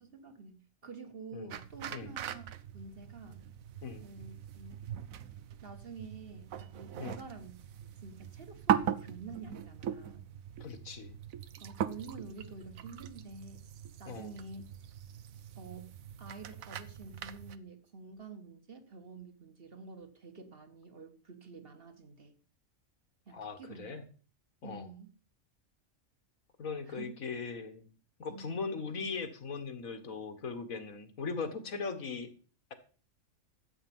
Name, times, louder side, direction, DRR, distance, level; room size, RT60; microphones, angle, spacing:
voice 1, 0.0-3.4 4.0-4.8 5.6-7.5 7.8-10.2 11.6-13.6 14.0-14.6 15.6-22.3 23.3-23.9 24.6-25.1 26.9-27.1 28.3-28.6, right 4 dB, 45° right, 7 dB, 1.9 m, -49 dB
sound 1, 1.5-17.6, right 9 dB, 85° right, 1.2 m, -40 dB
voice 2, 10.6-11.2 14.1-14.3 23.3-24.0 24.6-24.9 26.6-27.9 28.2-32.3, left 4 dB, 85° left, 9 dB, 2.0 m, -39 dB
13.5 x 8.3 x 5.5 m, 0.39 s
omnidirectional pair, 1.4 m